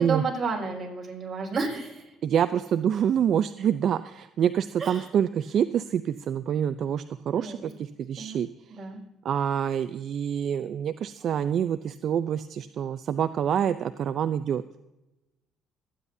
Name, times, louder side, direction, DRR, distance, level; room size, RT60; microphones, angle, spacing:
voice 1, 0.0-2.1 4.8-5.0 7.4-7.7 8.2-8.4 8.7-9.0, right 4 dB, 30° right, -2 dB, 5.5 m, -31 dB
voice 2, 2.2-8.9 9.2-14.6, right 9 dB, 55° right, 11 dB, 0.4 m, -26 dB
25.0 x 10.0 x 2.7 m, 0.96 s
cardioid pair, 105°, 0 cm